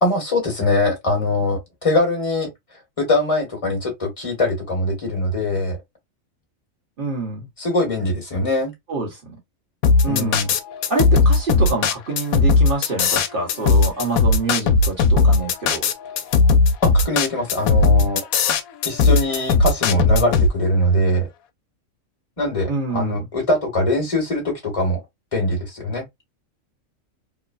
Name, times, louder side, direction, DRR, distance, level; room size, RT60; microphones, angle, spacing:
voice 1, 0.0-2.5 3.0-5.8 7.6-8.7 10.1-10.5 16.8-18.2 18.8-21.3 22.4-25.0 25.3-26.1, left 1 dB, 25° left, 1.2 m, -22 dB
voice 2, 7.0-7.5 8.9-9.2 10.0-10.4 10.9-15.8 22.7-23.3, right 3 dB, 40° right, 1.3 m, -26 dB
sound 1, 9.8-20.5, left 4 dB, 90° left, 1.0 m, -16 dB
3.1 x 2.1 x 2.4 m
omnidirectional pair, 1.4 m